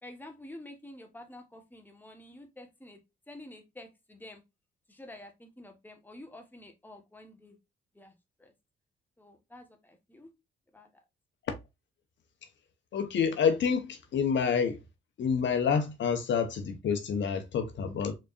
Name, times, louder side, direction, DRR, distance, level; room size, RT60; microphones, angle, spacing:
voice 1, 0.0-3.0 3.3-4.4 4.9-7.6 7.9-8.1 8.4-8.5 9.2-10.3 10.7-10.9, left 1 dB, 10° left, 1.1 m, -49 dB
voice 2, 12.9-14.8 15.2-18.2, left 6 dB, 65° left, 0.8 m, -28 dB
4.0 x 3.2 x 2.4 m
cardioid pair, 75°, 21 cm